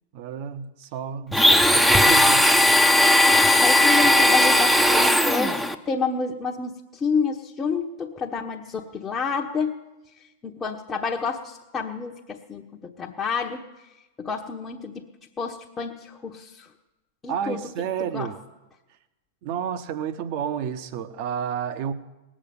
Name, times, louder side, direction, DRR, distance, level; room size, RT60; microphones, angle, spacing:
voice 1, 0.1-2.5 17.3-18.4 19.4-21.9, right 8 dB, 50° right, 1.0 m, -31 dB
Domestic sounds home sounds, 1.3-5.8, left 1 dB, ahead, 0.8 m, -17 dB
voice 2, 3.3-9.8 10.4-13.6 14.2-15.1 15.4-16.7 17.2-17.6 18.1-18.3, left 5 dB, 20° left, 1.1 m, -29 dB
18.5 x 7.4 x 8.7 m
hypercardioid pair, 100°, 0 cm